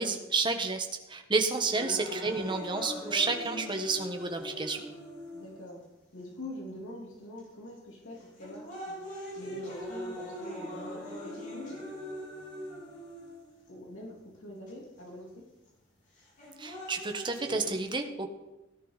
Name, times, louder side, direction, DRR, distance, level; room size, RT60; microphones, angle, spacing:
voice 1, 0.0-4.8 16.6-18.3, right 4 dB, 25° right, 5 dB, 1.4 m, -30 dB
voice 2, 1.7-2.0 5.3-5.8 6.1-9.0 9.3-11.8 13.7-15.5, left 1 dB, 80° left, -1 dB, 3.4 m, -45 dB
sound 1, 1.7-5.7 6.4-6.5 7.4-7.7 8.2-13.7 14.7-14.8 16.2-17.7, equal, 40° left, 5.6 m, -41 dB
17.0 x 11.0 x 4.2 m, 1.0 s
head